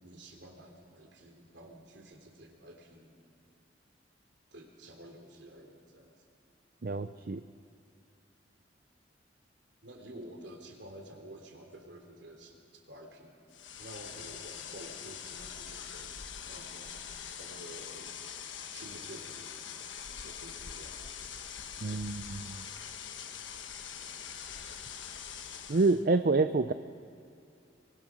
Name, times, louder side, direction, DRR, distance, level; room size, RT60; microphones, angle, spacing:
voice 1, 0.0-3.2 4.5-6.1 9.8-12.5 12.9-13.3 13.8-16.9 17.4-18.1 18.7-19.4 20.2-21.0, right 1 dB, 70° right, 2 dB, 3.2 m, -50 dB
voice 2, 6.8-7.4 21.8-22.6 25.7-26.7, right 3 dB, 50° right, 10 dB, 0.5 m, -27 dB
sound 1, 13.5-26.0, left 8 dB, 85° left, 1.3 m, -43 dB
24.0 x 22.0 x 6.2 m, 2.6 s
head